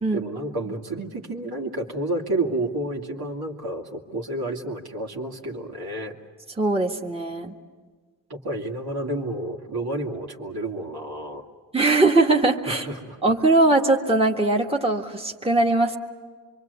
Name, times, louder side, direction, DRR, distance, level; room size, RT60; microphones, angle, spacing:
voice 1, 0.1-6.2 8.3-11.4 12.7-13.2, right 1 dB, 65° right, 0 dB, 2.5 m, -30 dB
voice 2, 6.6-7.5 11.7-12.9 13.2-16.0, right 2 dB, 15° right, 0 dB, 1.8 m, -20 dB
26.0 x 23.5 x 8.2 m, 1.5 s
cardioid pair, 60°, 40 cm